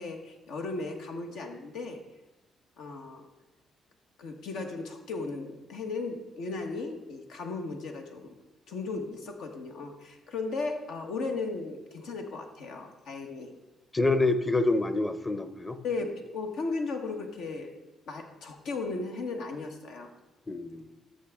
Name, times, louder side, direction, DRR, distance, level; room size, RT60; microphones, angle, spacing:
voice 1, 0.0-2.0 2.8-3.2 4.2-8.4 8.7-13.5 15.8-17.7 18.1-20.1, left 3 dB, 85° left, 3 dB, 1.3 m, -36 dB
voice 2, 13.9-15.8 20.5-20.9, left 2 dB, 20° left, 11 dB, 0.7 m, -27 dB
13.0 x 6.3 x 3.6 m, 1.0 s
cardioid pair, 90°, 0 cm